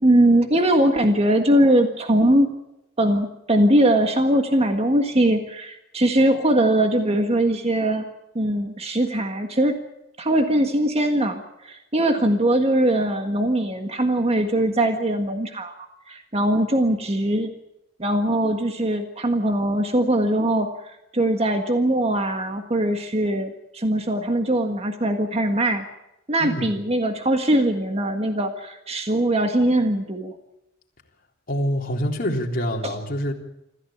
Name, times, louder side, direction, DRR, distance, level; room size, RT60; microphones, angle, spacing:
voice 1, 0.0-2.5 3.0-8.0 8.3-9.8 10.2-17.5 18.0-25.8 26.3-30.3 32.8-32.9, right 1 dB, 35° right, 5 dB, 1.7 m, -21 dB
voice 2, 26.4-26.8 31.5-33.3, equal, 50° left, 0 dB, 3.6 m, -26 dB
25.5 x 15.0 x 8.7 m, 0.87 s
head